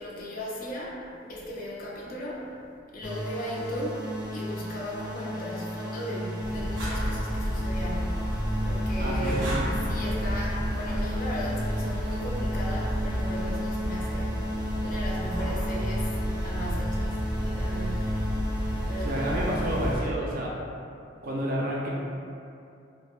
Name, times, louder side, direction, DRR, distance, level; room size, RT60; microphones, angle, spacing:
voice 1, 0.0-2.5 2.9-4.1 4.3-8.2 8.6-14.5 14.8-17.1 17.4-18.3 18.9-19.4, equal, 50° left, -5 dB, 0.5 m, -37 dB
sound 1, 3.0-20.1, equal, 5° right, 0.6 m, -34 dB
sound 2, 6.4-20.0, equal, 85° right, 0.8 m, -31 dB
voice 2, 9.0-9.4 19.0-20.5 21.2-21.9, right 1 dB, 50° right, -4 dB, 0.4 m, -29 dB
3.2 x 2.1 x 2.4 m, 2.5 s
head